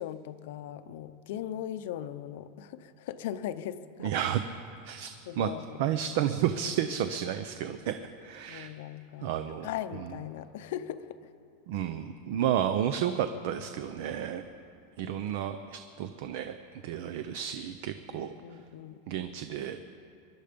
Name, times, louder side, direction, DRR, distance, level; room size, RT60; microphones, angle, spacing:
voice 1, 0.0-4.1 5.3-5.8 8.5-9.3 9.6-11.3 15.0-15.3 18.1-19.0, left 11 dB, 55° left, 11 dB, 0.7 m, -39 dB
voice 2, 4.0-4.4 4.8-5.1 5.4-5.5 5.8-8.7 9.2-10.0 11.7-14.4 15.0-18.6 19.1-19.8, right 10 dB, 45° right, 10 dB, 0.6 m, -32 dB
23.5 x 11.5 x 5.2 m, 2.6 s
supercardioid pair, 180°, 0 cm